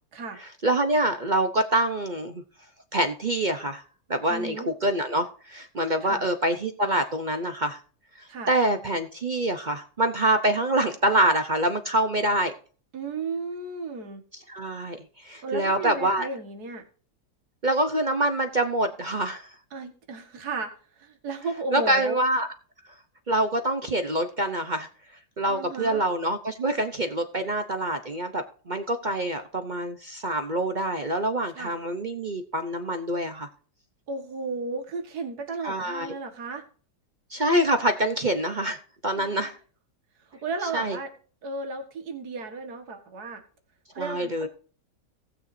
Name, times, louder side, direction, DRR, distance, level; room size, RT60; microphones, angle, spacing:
voice 1, 0.4-2.4 2.9-3.8 4.1-7.8 8.2-12.5 14.5-16.3 17.6-19.5 21.7-22.5 23.3-24.9 25.4-33.5 35.6-36.1 37.3-39.6 40.7-41.0 44.0-44.5, right 1 dB, 40° right, 7 dB, 0.7 m, -26 dB
voice 2, 4.3-4.7 6.0-6.2 8.3-8.5 12.9-14.2 15.4-16.8 19.7-20.7 21.0-22.2 25.5-26.0 31.5-31.7 34.1-36.6 39.2-39.5 40.3-41.1 41.4-43.4 43.9-44.5, right 3 dB, 65° right, 6 dB, 2.2 m, -34 dB
18.5 x 6.8 x 2.7 m, 0.41 s
omnidirectional pair, 1.8 m